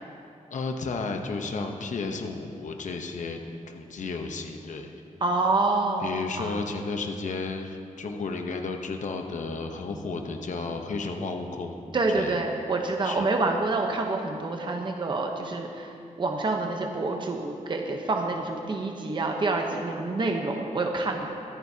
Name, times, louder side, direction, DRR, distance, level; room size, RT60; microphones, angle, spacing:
voice 1, 0.5-3.4 3.7-4.9 6.0-11.8 12.1-12.4 13.0-13.3, left 4 dB, 65° left, 4 dB, 0.9 m, -33 dB
voice 2, 5.2-6.6 11.9-15.9 16.2-21.3, right 3 dB, 35° right, 2 dB, 0.8 m, -27 dB
25.5 x 9.3 x 2.8 m, 2.5 s
wide cardioid pair, 175°, 14 cm